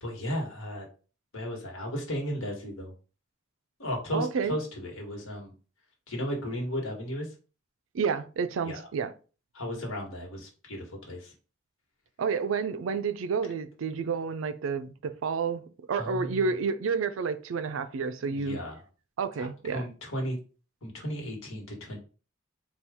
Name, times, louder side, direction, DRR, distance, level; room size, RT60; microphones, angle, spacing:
voice 1, 0.0-0.9 1.3-2.9 3.8-5.5 6.1-7.3 8.6-8.8 9.5-11.3 15.9-16.4 18.3-18.8 19.4-20.4 20.8-22.0, equal, 80° left, 1.4 m, -35 dB
voice 2, 4.1-4.6 7.9-9.1 12.2-15.6 15.9-18.6 19.2-19.8, right 5 dB, 70° right, 0.4 m, -30 dB
4.3 x 2.3 x 3.5 m
head